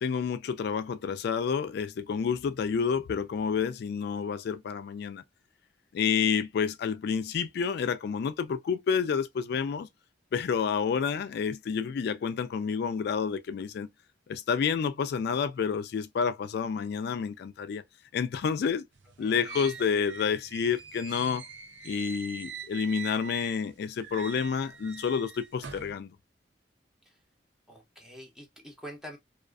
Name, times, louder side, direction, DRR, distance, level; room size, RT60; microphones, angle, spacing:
voice 1, 0.0-5.2 5.9-9.9 10.3-13.9 14.3-17.8 18.1-18.8 19.2-21.4 21.8-26.2, left 6 dB, 60° left, 0.3 m, -29 dB
sound 1, 18.9-23.7 24.0-25.9, right 6 dB, 75° right, 0.5 m, -43 dB
voice 2, 19.2-19.7 27.1-27.2 27.7-29.2, equal, 5° right, 0.6 m, -46 dB
2.3 x 2.3 x 2.3 m
head